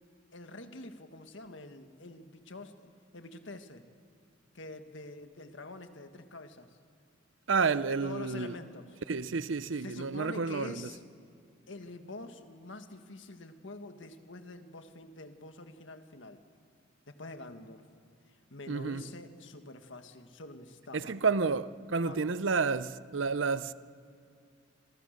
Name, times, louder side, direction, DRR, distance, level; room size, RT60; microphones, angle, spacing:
voice 1, 0.3-3.8 4.5-6.7 7.9-9.0 9.8-11.0 11.7-16.4 17.1-17.8 18.5-21.2 22.0-22.3, left 2 dB, 70° left, 1.8 m, -46 dB
voice 2, 7.5-8.5 9.1-10.9 18.7-19.1 20.9-23.7, right 4 dB, 75° right, 0.7 m, -30 dB
27.5 x 27.0 x 6.7 m
head